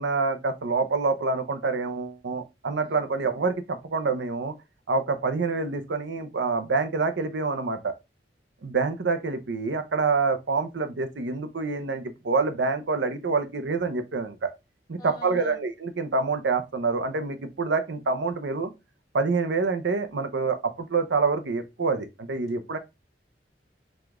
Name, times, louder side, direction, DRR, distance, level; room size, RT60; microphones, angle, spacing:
voice 1, 0.0-4.5 4.9-7.9 8.6-14.5 14.9-18.7 19.1-22.8, right 4 dB, 85° right, 0.6 m, -27 dB
voice 2, 15.0-15.6, left 3 dB, 20° left, 1.5 m, -47 dB
4.9 x 2.4 x 3.5 m
head